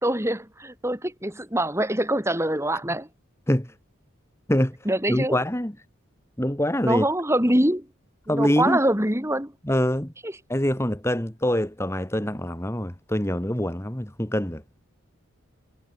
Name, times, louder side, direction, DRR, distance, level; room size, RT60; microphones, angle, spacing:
voice 1, 0.0-3.1 4.9-5.4 6.8-7.9 8.3-9.5 10.2-10.3, right 1 dB, 10° right, 3.6 m, -24 dB
voice 2, 5.1-5.8 6.4-7.1 8.3-8.8 9.6-10.1 10.5-14.6, left 1 dB, 10° left, 1.6 m, -24 dB
head